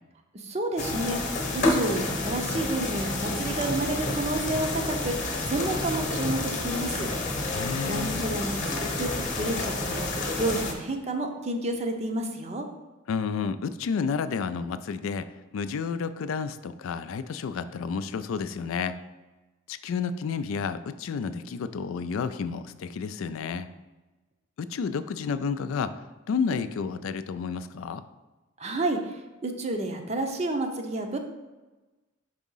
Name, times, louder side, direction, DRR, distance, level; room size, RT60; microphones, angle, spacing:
voice 1, 0.3-7.1 7.8-10.1 10.4-12.7 28.6-31.2, right 2 dB, 30° right, 4 dB, 0.6 m, -30 dB
sound 1, 0.8-10.7, left 2 dB, 35° left, 1.0 m, -29 dB
voice 2, 7.4-8.1 13.1-19.0 19.7-23.7 24.6-28.0, left 5 dB, 75° left, 12 dB, 0.3 m, -31 dB
4.8 x 3.6 x 5.5 m, 1.1 s
head